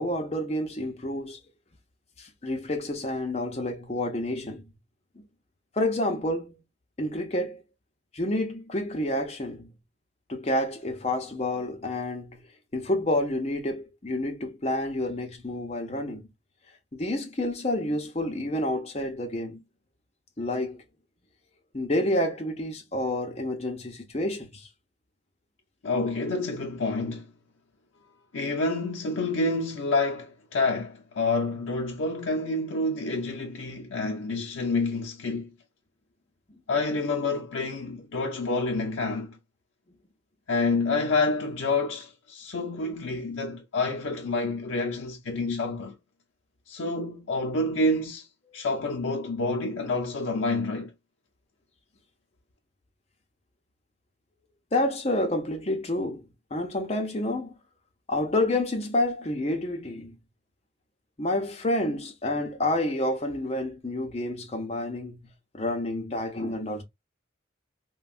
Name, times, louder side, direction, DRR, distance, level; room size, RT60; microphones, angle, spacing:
voice 1, 0.0-1.4 2.2-4.6 5.7-6.6 7.0-7.6 8.1-9.7 10.3-12.4 12.7-16.3 16.9-19.6 20.4-20.8 21.7-24.7 42.8-42.9 54.7-57.5 58.1-60.2 61.2-66.8, left 1 dB, 35° left, 0.7 m, -29 dB
voice 2, 25.8-27.3 28.3-35.5 36.7-39.4 40.5-46.0 46.7-48.3 48.5-50.9, left 2 dB, 85° left, 0.5 m, -28 dB
3.2 x 2.2 x 2.4 m
head